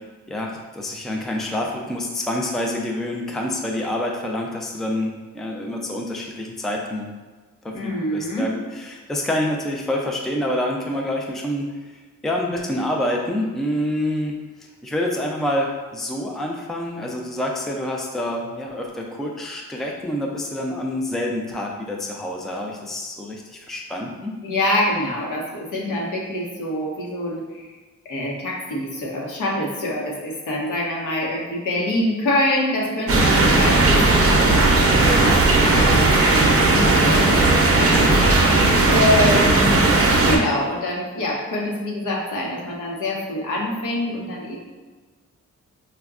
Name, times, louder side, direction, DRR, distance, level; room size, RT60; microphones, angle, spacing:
voice 1, 0.3-7.1 7.6-11.7 12.2-14.3 14.8-24.3, left 1 dB, ahead, 0 dB, 0.4 m, -27 dB
voice 2, 7.7-8.5 24.4-27.7 28.1-44.6, left 1 dB, 80° left, -2 dB, 0.9 m, -25 dB
sound 1, 33.1-40.4, right 2 dB, 50° right, 0.6 m, -16 dB
4.9 x 2.2 x 2.4 m, 1.3 s
cardioid pair, 105°, 31 cm